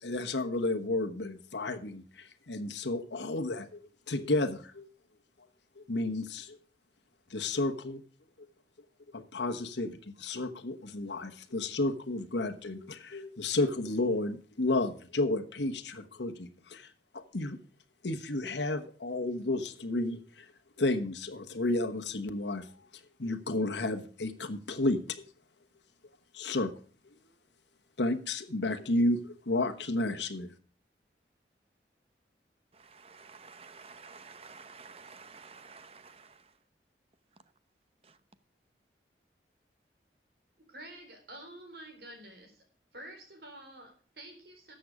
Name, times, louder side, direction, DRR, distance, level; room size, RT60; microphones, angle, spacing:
voice 1, 0.0-3.8 4.1-4.9 5.8-6.6 7.3-8.0 9.1-16.9 17.1-17.6 18.0-20.5 20.8-22.7 23.2-25.2 26.3-26.7 28.0-30.5, left 2 dB, 90° left, 1.2 m, -32 dB
voice 2, 32.7-36.6 38.0-38.2, right 5 dB, 35° right, 0.8 m, -51 dB
voice 3, 40.7-42.6 42.9-44.7, right 1 dB, 65° right, 4.1 m, -49 dB
13.5 x 7.8 x 4.9 m
head